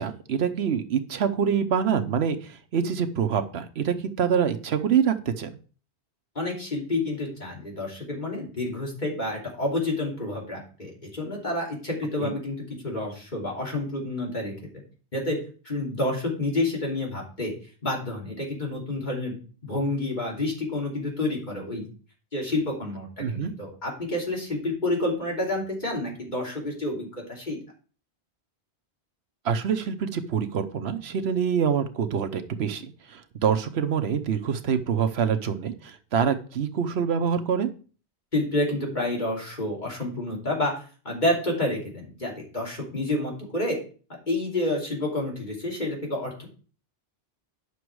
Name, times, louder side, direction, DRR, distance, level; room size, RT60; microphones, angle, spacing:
voice 1, 0.0-5.5 12.2-12.3 23.2-23.5 29.4-32.8 33.1-37.7, right 7 dB, 70° right, 8 dB, 1.0 m, -25 dB
voice 2, 6.3-12.6 12.8-14.5 15.1-15.4 15.6-17.5 17.8-19.3 19.6-21.9 22.3-27.6 38.3-40.7 41.0-43.8 44.3-46.5, left 2 dB, 45° left, -2 dB, 3.1 m, -29 dB
9.8 x 6.1 x 4.7 m, 0.39 s
omnidirectional pair, 1.1 m